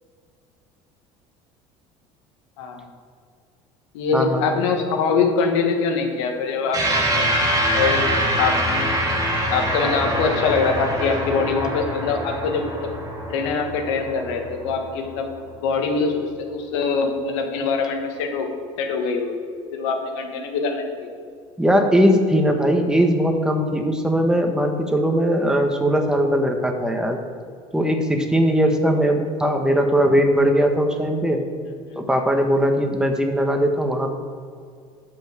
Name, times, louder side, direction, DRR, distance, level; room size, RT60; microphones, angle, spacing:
voice 1, 2.6-2.9 3.9-7.3 7.7-8.0 8.4-9.0 9.5-12.9 13.3-15.3 15.6-18.5 18.8-19.4 19.7-21.2 31.9-32.1, left 4 dB, 90° left, 4 dB, 1.5 m, -23 dB
voice 2, 4.1-4.5 21.6-27.2 27.7-31.4 31.9-34.1, equal, 5° right, 4 dB, 1.3 m, -19 dB
sound 1, 6.7-15.4, equal, 25° right, 1.9 m, -24 dB
10.0 x 5.5 x 7.3 m, 2.2 s
supercardioid pair, 105°, 15 cm